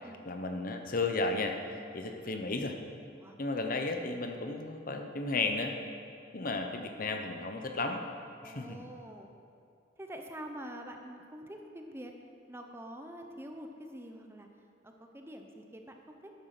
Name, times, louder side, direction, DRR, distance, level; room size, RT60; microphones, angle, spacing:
voice 1, 0.2-1.6 1.9-2.7 3.4-5.7 6.3-8.0 8.4-8.9, left 3 dB, 50° left, 5 dB, 1.0 m, -33 dB
voice 2, 8.4-9.3 10.0-12.1 12.5-14.5 14.8-16.3, equal, 15° right, 3 dB, 0.8 m, -46 dB
12.0 x 9.5 x 6.0 m, 2.4 s
head